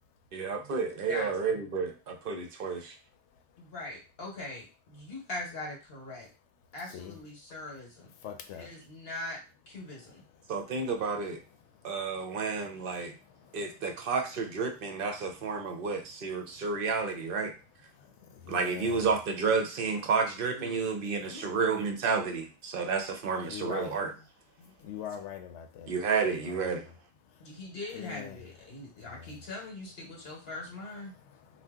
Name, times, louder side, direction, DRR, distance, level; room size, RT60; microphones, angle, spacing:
voice 1, 0.3-3.0 10.5-11.4 11.8-13.1 13.5-17.5 18.5-24.1 25.9-26.9, right 5 dB, 60° right, 0.7 m, -31 dB
voice 2, 1.1-1.6 3.6-6.3 6.7-8.1 8.6-9.4 9.7-10.2 20.5-20.9 21.3-21.5 27.4-31.1, left 2 dB, 60° left, 1.1 m, -41 dB
voice 3, 8.2-8.7 18.5-19.1 23.4-24.0 24.8-25.9 26.3-26.6 27.9-28.4, left 9 dB, 80° left, 0.9 m, -41 dB
2.7 x 2.2 x 3.5 m
omnidirectional pair, 1.2 m